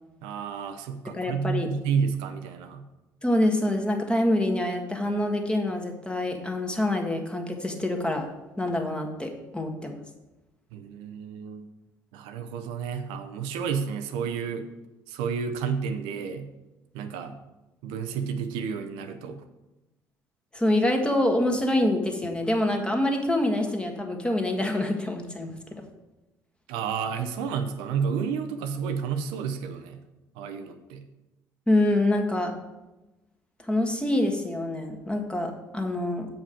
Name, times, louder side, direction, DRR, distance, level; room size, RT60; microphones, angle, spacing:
voice 1, 0.2-2.8 10.7-11.7 12.1-14.7 15.1-16.5 16.9-17.3 17.8-19.4 26.7-30.0 30.4-31.0, right 6 dB, 70° right, 8 dB, 0.6 m, -31 dB
voice 2, 1.1-1.7 3.2-8.3 8.6-10.0 20.5-25.6 31.7-32.5 33.7-36.3, left 1 dB, 10° left, 3 dB, 1.5 m, -26 dB
7.3 x 5.2 x 5.0 m, 1.0 s
hypercardioid pair, 55°, 9 cm